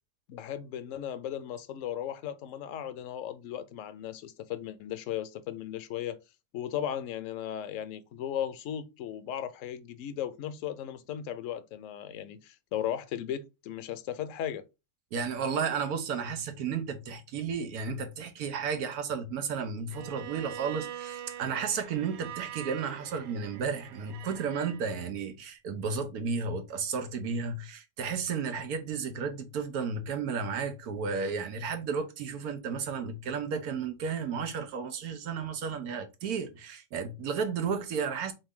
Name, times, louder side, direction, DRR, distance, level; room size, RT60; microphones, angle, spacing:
voice 1, 0.3-6.2 6.5-14.6, left 10 dB, 70° left, 0.9 m, -36 dB
voice 2, 15.1-38.3, right 5 dB, 90° right, 1.3 m, -33 dB
Bowed string instrument, 19.9-24.8, right 11 dB, 65° right, 0.6 m, -43 dB
3.9 x 3.2 x 3.5 m
omnidirectional pair, 1.5 m